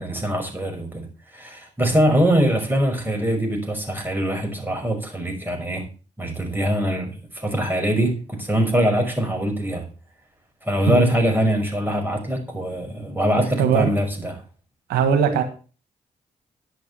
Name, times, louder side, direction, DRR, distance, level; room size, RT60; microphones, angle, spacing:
voice 1, 0.0-5.8 6.2-9.9 10.6-14.4, equal, 10° right, 5.8 m, -23 dB
voice 2, 13.6-13.9 14.9-15.4, right 7 dB, 85° right, 1.4 m, -19 dB
10.5 x 6.8 x 6.6 m
supercardioid pair, 45°, 16 cm